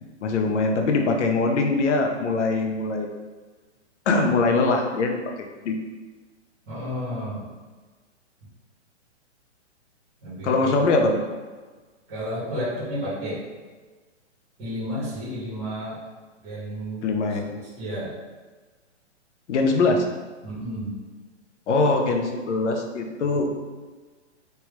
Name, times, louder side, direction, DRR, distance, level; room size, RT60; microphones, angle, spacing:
voice 1, 0.2-3.1 4.1-5.8 10.4-11.2 17.0-17.5 19.5-20.1 21.7-23.5, left 3 dB, 75° left, 3 dB, 0.6 m, -22 dB
voice 2, 6.7-7.4 10.2-10.9 12.1-13.4 14.6-16.0 16.4-17.2 17.5-18.1 20.4-20.9, equal, 5° right, -17 dB, 0.4 m, -32 dB
3.3 x 2.3 x 3.0 m, 1.3 s
hypercardioid pair, 165°, 36 cm